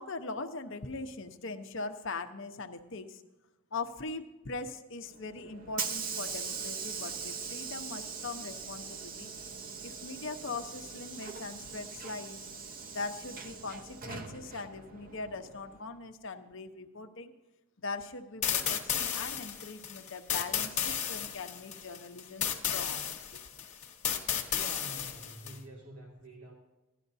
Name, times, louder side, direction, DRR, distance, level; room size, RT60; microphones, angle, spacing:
voice 1, 0.0-3.2 3.7-9.3 9.8-12.5 12.9-17.3 17.8-23.0 23.3-23.4, left 3 dB, 60° left, 6 dB, 0.8 m, -41 dB
Hiss / Sliding door, 5.1-15.9, right 5 dB, 40° right, 0.8 m, -41 dB
sound 1, 18.4-25.6, left 8 dB, 35° left, 1.1 m, -33 dB
voice 2, 24.5-26.5, right 1 dB, 80° right, -2 dB, 2.3 m, -48 dB
16.5 x 12.0 x 2.7 m, 1.0 s
head